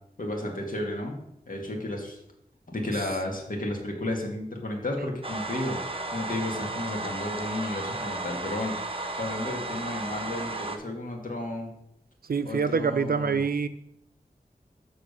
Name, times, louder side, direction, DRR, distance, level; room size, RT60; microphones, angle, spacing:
voice 1, 0.2-1.2 1.5-2.2 2.7-5.8 6.1-8.8 9.2-11.7 12.4-13.4, left 1 dB, 60° left, 0 dB, 1.9 m, -32 dB
sound 1, 5.2-10.8, right 2 dB, 35° right, 0.8 m, -34 dB
voice 2, 12.3-13.7, right 5 dB, 70° right, 12 dB, 0.5 m, -25 dB
7.1 x 3.8 x 6.5 m, 0.76 s
wide cardioid pair, 55°, 16 cm